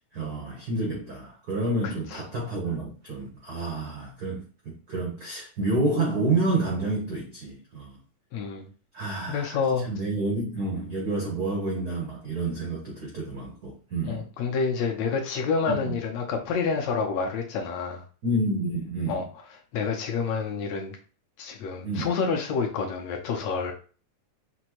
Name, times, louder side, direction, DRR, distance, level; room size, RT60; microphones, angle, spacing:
voice 1, 0.1-8.0 8.9-14.2 15.7-16.0 18.2-19.3 21.8-22.1, right 2 dB, 90° right, 0.8 m, -29 dB
voice 2, 1.8-2.2 8.3-8.6 9.3-9.9 14.1-18.0 19.1-19.3 19.7-21.0 21.4-23.7, left 5 dB, 75° left, 1.8 m, -28 dB
6.0 x 2.7 x 2.9 m
omnidirectional pair, 3.4 m